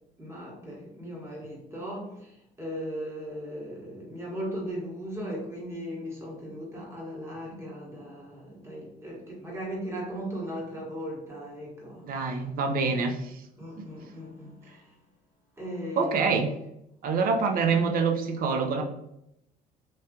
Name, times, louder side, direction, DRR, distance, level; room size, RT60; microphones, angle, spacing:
voice 1, 0.2-12.5 13.6-15.0 15.6-16.5, equal, 15° right, -3 dB, 1.2 m, -38 dB
voice 2, 12.0-13.4 13.8-13.9 16.0-16.5 17.0-18.8, right 4 dB, 60° right, 4 dB, 0.6 m, -26 dB
3.1 x 2.8 x 2.3 m, 0.82 s
cardioid pair, 110°, 17 cm